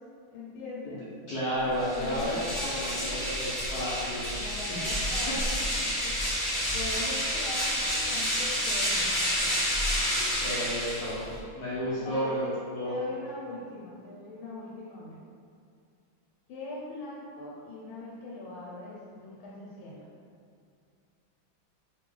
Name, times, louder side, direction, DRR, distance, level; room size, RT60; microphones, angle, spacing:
voice 1, 0.3-1.1 1.9-3.2 4.3-6.2 6.7-10.5 12.0-12.5 12.8-15.2 16.5-20.1, left 2 dB, 85° left, -5 dB, 1.5 m, -41 dB
voice 2, 1.3-2.4 2.6-4.3 10.4-12.9, equal, 60° left, -10 dB, 1.1 m, -32 dB
sound 1, 1.7-11.4, equal, 20° left, 0.5 m, -29 dB
3.5 x 3.5 x 3.3 m, 2.3 s
omnidirectional pair, 2.2 m